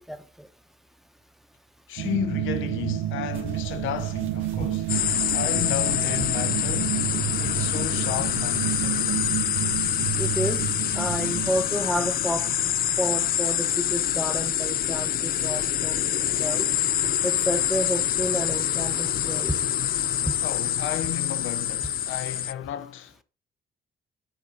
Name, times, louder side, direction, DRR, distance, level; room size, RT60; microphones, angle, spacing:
voice 1, 0.1-0.5 4.6-4.7 7.4-7.5 10.2-10.6 10.9-12.5 13.0-16.0 16.4-16.7 17.2-19.6 20.2-20.3, equal, ahead, 1.0 m, -30 dB
voice 2, 1.9-4.9 5.3-7.1 7.4-9.4 20.4-23.2, left 10 dB, 85° left, 0.7 m, -33 dB
sound 1, 2.0-13.6, right 15 dB, 65° right, 0.5 m, -31 dB
sound 2, 3.3-10.7, right 7 dB, 85° right, 1.8 m, -42 dB
sound 3, 4.9-22.5, left 11 dB, 50° left, 0.4 m, -26 dB
10.0 x 4.3 x 3.9 m
cardioid pair, 90°, 20 cm